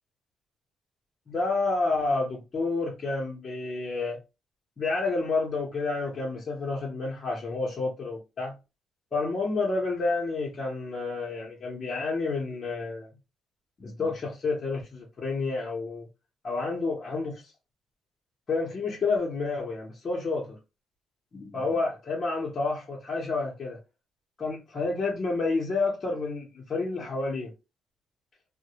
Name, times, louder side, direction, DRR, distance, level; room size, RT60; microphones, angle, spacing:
voice 1, 1.3-4.2 4.8-8.5 9.1-13.1 13.8-16.1 16.4-17.5 18.5-20.6 21.3-23.8 24.4-27.5, left 3 dB, 45° left, 0.8 m, -29 dB
2.2 x 2.1 x 2.8 m
cardioid pair, 90°, 0 cm